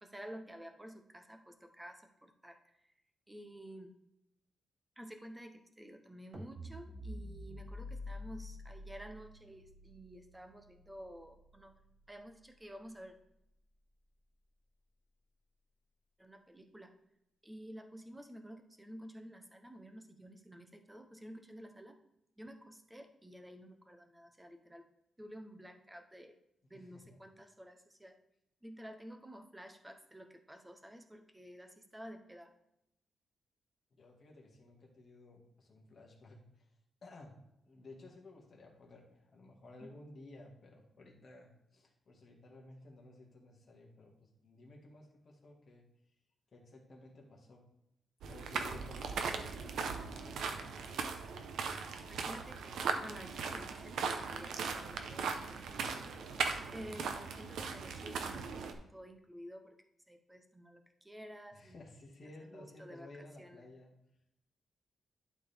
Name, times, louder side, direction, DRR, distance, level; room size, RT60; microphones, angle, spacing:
voice 1, 0.0-2.6 3.3-3.9 5.0-11.7 12.1-13.1 16.2-16.9 17.4-22.0 22.4-24.9 25.2-26.4 26.7-28.2 28.6-32.5 39.8-39.9 52.1-56.1 56.7-59.8 60.1-61.8 62.4-63.6, equal, 10° right, 6 dB, 0.8 m, -51 dB
sound 1, 6.3-12.6, left 1 dB, 30° right, 1.3 m, -48 dB
voice 2, 33.9-36.7 37.0-37.4 37.7-45.8 46.5-47.6 48.3-50.8 61.5-63.9, left 2 dB, 40° left, -1 dB, 1.8 m, -55 dB
sound 2, 48.2-58.7, right 5 dB, 90° right, 0.8 m, -38 dB
11.5 x 4.3 x 3.4 m, 0.83 s
wide cardioid pair, 150°, 0 cm